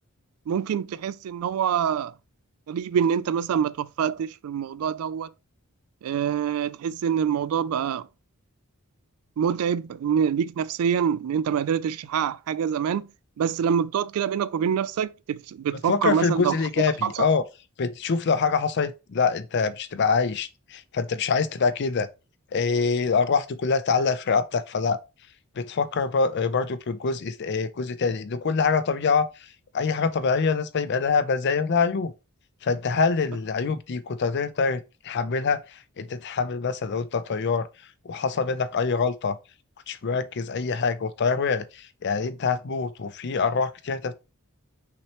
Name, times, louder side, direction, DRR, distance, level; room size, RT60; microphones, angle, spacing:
voice 1, 0.5-2.1 2.7-5.3 6.0-8.1 9.4-13.1 13.4-16.6 17.0-17.3, right 8 dB, 85° right, 0.3 m, -25 dB
voice 2, 15.9-17.4 17.8-22.1 22.5-25.0 25.6-29.3 29.7-32.1 32.6-37.7 38.1-39.4 39.9-44.1, left 5 dB, 55° left, 0.5 m, -25 dB
5.8 x 3.1 x 2.9 m
head